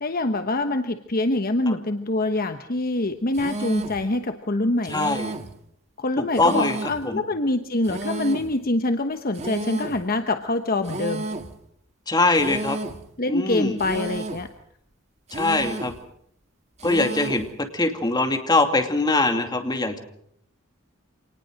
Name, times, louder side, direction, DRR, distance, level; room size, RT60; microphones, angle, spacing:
voice 1, 0.0-5.1 6.0-11.3 13.2-14.5, left 2 dB, 45° left, 8 dB, 1.1 m, -25 dB
sound 1, 3.3-4.0 4.8-5.6 6.3-7.1 7.8-8.5 9.3-10.1 10.8-11.6 12.3-13.1 13.8-14.5 15.3-16.0 16.8-17.5, right 2 dB, 35° right, 1.8 m, -32 dB
voice 2, 4.9-5.3 6.2-6.8 7.0-7.2 12.1-12.8 13.3-13.8 15.3-15.9 16.8-17.5 17.7-20.0, left 2 dB, 20° left, 5 dB, 2.6 m, -22 dB
26.0 x 19.5 x 6.5 m, 0.70 s
head